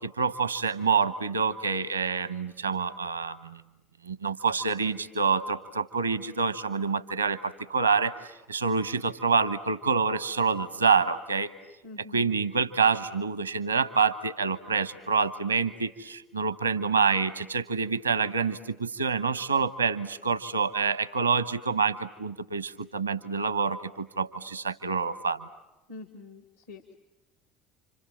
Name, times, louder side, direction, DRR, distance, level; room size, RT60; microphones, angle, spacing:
voice 1, 0.0-3.6 4.0-11.5 12.1-25.5, right 5 dB, 85° right, 14 dB, 1.0 m, -27 dB
voice 2, 11.8-12.3 25.9-26.9, left 3 dB, 75° left, 6 dB, 2.1 m, -45 dB
30.0 x 26.0 x 7.4 m, 0.99 s
figure-of-eight pair, 60°, 0 cm